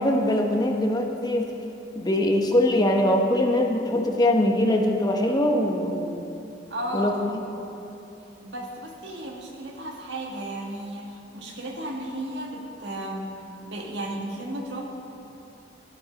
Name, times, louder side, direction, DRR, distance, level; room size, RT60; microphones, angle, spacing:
voice 1, 0.0-1.5 1.9-6.1 6.9-7.1, left 1 dB, 20° left, 2 dB, 0.9 m, -22 dB
voice 2, 6.7-7.3 8.4-13.2 13.6-14.8, right 1 dB, 70° right, 0 dB, 1.7 m, -34 dB
11.5 x 10.0 x 5.1 m, 3.0 s
head